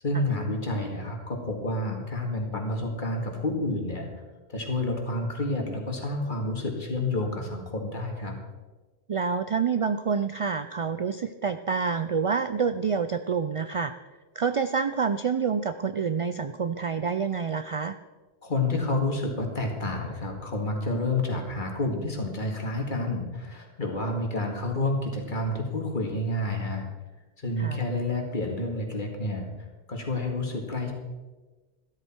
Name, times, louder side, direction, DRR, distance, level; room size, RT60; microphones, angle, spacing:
voice 1, 0.0-4.2 4.5-8.4 18.4-26.8 27.4-29.5 29.9-30.9, left 2 dB, 45° left, 2 dB, 2.2 m, -29 dB
voice 2, 9.1-13.9 14.4-18.0 27.6-27.8, right 6 dB, 60° right, 11 dB, 0.3 m, -27 dB
13.0 x 13.0 x 4.4 m, 1.2 s
omnidirectional pair, 1.1 m